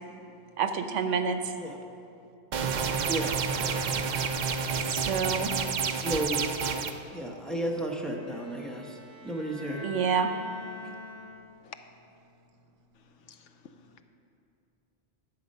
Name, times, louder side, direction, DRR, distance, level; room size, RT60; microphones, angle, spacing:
voice 1, 0.6-1.5 4.8-5.6 9.8-10.3, right 6 dB, 90° right, 8 dB, 1.1 m, -28 dB
sound 1, 2.5-6.9, right 5 dB, 55° right, 0.5 m, -29 dB
voice 2, 3.1-3.5 6.0-6.4 7.1-9.9 10.8-10.9, right 1 dB, ahead, -1 dB, 0.9 m, -33 dB
Bowed string instrument, 7.5-11.7, left 2 dB, 60° left, 2.7 m, -45 dB
voice 3, 13.2-14.0, left 8 dB, 80° left, 8 dB, 1.0 m, -50 dB
11.5 x 7.9 x 5.4 m, 2.7 s
omnidirectional pair, 1.2 m